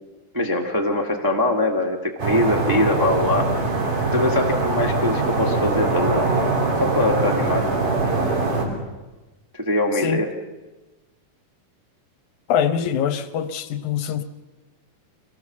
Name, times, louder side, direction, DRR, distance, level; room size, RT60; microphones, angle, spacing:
voice 1, 0.3-3.5 4.1-6.3 6.8-7.7 9.5-10.3, left 1 dB, 25° right, 0.4 m, -22 dB
sound 1, 2.2-8.7, right 3 dB, 80° right, 4.8 m, -22 dB
voice 2, 12.5-14.2, left 8 dB, 75° left, 2.1 m, -23 dB
25.0 x 17.5 x 7.2 m
omnidirectional pair, 3.7 m